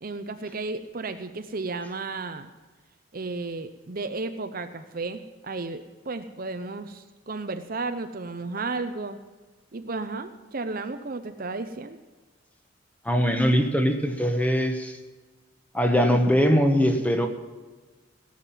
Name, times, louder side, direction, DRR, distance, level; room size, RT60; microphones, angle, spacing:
voice 1, 0.0-2.5 3.1-9.2 9.7-12.0, right 3 dB, 45° right, 9 dB, 0.7 m, -33 dB
voice 2, 13.0-15.0 15.7-17.3, equal, 5° left, 5 dB, 1.2 m, -21 dB
17.0 x 7.4 x 7.4 m, 1.3 s
head